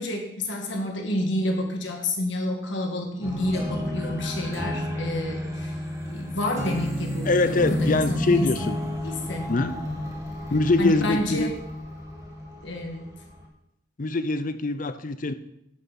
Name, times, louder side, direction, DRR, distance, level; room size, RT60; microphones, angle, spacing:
voice 1, 0.0-5.8 6.0-8.7 9.0-10.0 10.8-11.6 12.6-13.0, left 1 dB, 75° left, 2 dB, 1.8 m, -29 dB
sound 1, 3.2-13.4, left 1 dB, 15° right, 2.2 m, -31 dB
voice 2, 7.3-8.8 9.5-9.8 10.5-11.5 14.0-15.3, left 3 dB, 45° left, 11 dB, 0.6 m, -23 dB
11.0 x 7.8 x 4.1 m, 0.81 s
head